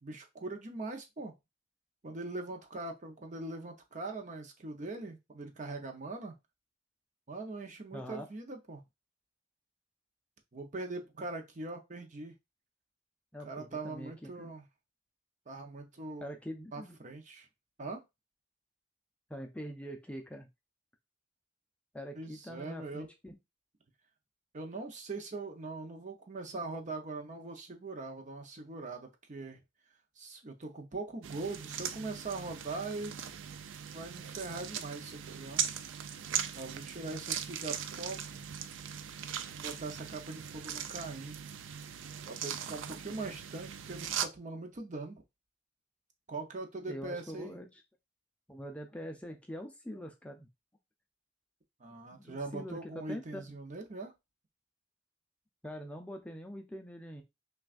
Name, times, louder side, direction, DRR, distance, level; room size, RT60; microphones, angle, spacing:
voice 1, 0.0-1.3 2.0-6.4 7.3-8.8 10.5-12.4 13.4-14.6 15.5-16.3 16.7-17.5 17.8-18.0 22.1-23.1 24.5-29.6 30.2-33.2 33.9-35.6 36.5-38.4 39.5-41.4 42.3-45.2 46.3-47.6 51.8-54.1, right 3 dB, 40° right, 4 dB, 0.7 m, -41 dB
voice 2, 7.9-8.3 13.3-14.5 16.2-17.0 19.3-20.5 21.9-23.4 46.9-47.8 48.5-50.5 52.1-53.5 55.6-57.2, equal, 5° left, 4 dB, 0.4 m, -44 dB
sound 1, 31.2-44.3, right 8 dB, 85° right, 0.4 m, -39 dB
5.8 x 2.4 x 2.4 m, 0.22 s
head